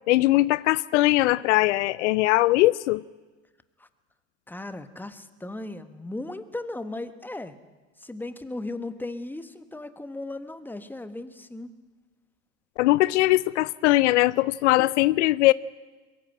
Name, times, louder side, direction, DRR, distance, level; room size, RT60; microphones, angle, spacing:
voice 1, 0.1-3.0 12.8-15.5, left 18 dB, 75° left, 0.5 m, -20 dB
voice 2, 4.5-7.5 8.0-11.7, left 2 dB, 5° left, 1.3 m, -36 dB
22.0 x 14.0 x 9.0 m
hypercardioid pair, 85°, 36 cm